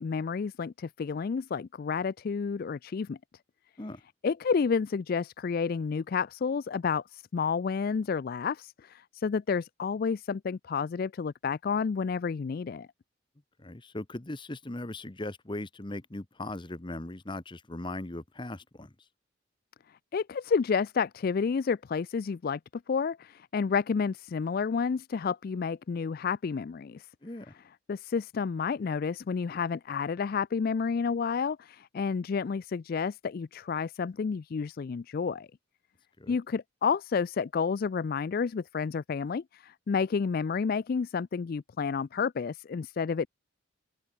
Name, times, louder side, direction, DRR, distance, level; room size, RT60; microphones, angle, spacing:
voice 1, 0.0-3.2 4.2-12.9 20.1-22.6 22.9-27.1 27.9-35.5 36.3-43.3, left 5 dB, 45° left, 0.3 m, -30 dB
voice 2, 13.6-18.9 27.2-27.6 36.2-36.4, left 2 dB, 25° left, 0.9 m, -39 dB
open air
head